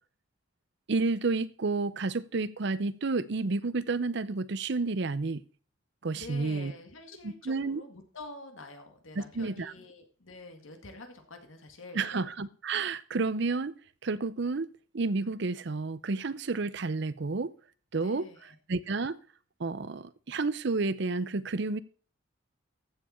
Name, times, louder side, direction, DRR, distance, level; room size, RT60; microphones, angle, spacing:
voice 1, 0.9-5.4 6.0-6.7 7.2-7.8 9.1-9.7 11.9-13.7 14.0-14.7 14.9-17.5 17.9-18.3 18.7-19.2 19.6-21.8, right 3 dB, 60° right, 0.6 m, -30 dB
voice 2, 6.1-12.3 18.0-18.6, left 2 dB, 80° left, 2.0 m, -47 dB
14.5 x 7.0 x 4.4 m
head